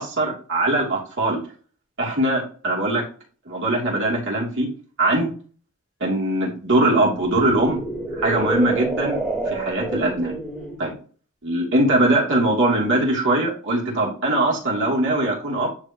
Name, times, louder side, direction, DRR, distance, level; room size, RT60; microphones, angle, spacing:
voice 1, 0.0-1.4 2.0-3.0 3.5-4.7 5.0-5.3 6.0-7.8 8.1-9.2 9.4-10.3 10.8-10.9 11.4-15.7, right 1 dB, 60° right, -3 dB, 3.0 m, -21 dB
sound 1, 4.1-4.2 7.1-10.8, right 2 dB, ahead, 2.2 m, -28 dB
10.5 x 3.6 x 3.0 m, 0.40 s
head